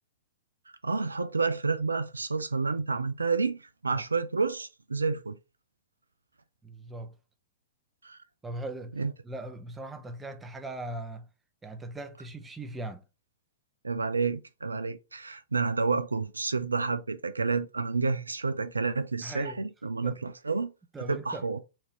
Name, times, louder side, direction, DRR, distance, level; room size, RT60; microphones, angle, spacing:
voice 1, 0.8-5.4 8.0-8.2 9.0-9.1 13.8-20.7 21.1-21.6, right 4 dB, 80° right, 0.3 m, -29 dB
voice 2, 6.6-7.1 8.4-11.3 11.6-13.0 19.2-19.6 20.0-20.2 20.9-21.5, right 2 dB, 10° right, 0.6 m, -40 dB
4.3 x 2.6 x 2.9 m
figure-of-eight pair, 105°, 0 cm